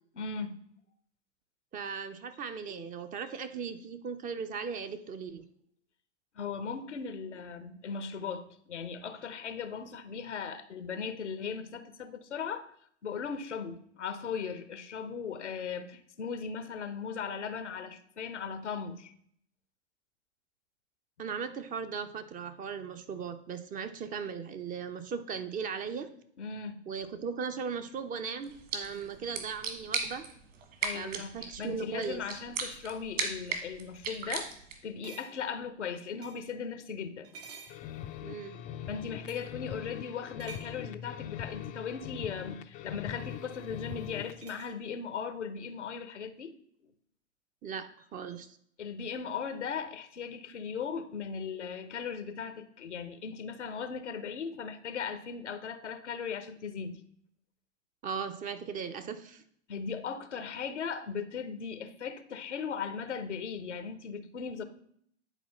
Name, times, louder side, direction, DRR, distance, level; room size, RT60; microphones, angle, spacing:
voice 1, 0.1-0.6 2.7-2.9 6.3-12.7 13.0-19.1 26.4-26.8 30.8-34.5 34.8-37.3 38.9-46.5 48.8-57.0 59.7-64.6, left 6 dB, 90° left, 0.8 m, -38 dB
voice 2, 1.7-5.5 21.2-26.1 26.9-30.3 30.9-32.2 38.2-38.6 47.6-48.5 58.0-59.4, right 6 dB, 25° right, 0.6 m, -38 dB
sound 1, 27.0-30.8 31.9-32.1 32.5-32.9 33.5-33.7 33.9-34.1 34.4-34.6 35.0-36.6 37.2-38.4 39.2-39.6 40.4-40.8 42.5-42.6 44.4-44.8, right 4 dB, 65° right, 1.5 m, -53 dB
sound 2, 28.4-34.9, right 5 dB, 45° right, 1.7 m, -38 dB
sound 3, 37.7-44.4, left 10 dB, 25° left, 0.4 m, -42 dB
10.0 x 4.2 x 4.2 m
hypercardioid pair, 100°, 34 cm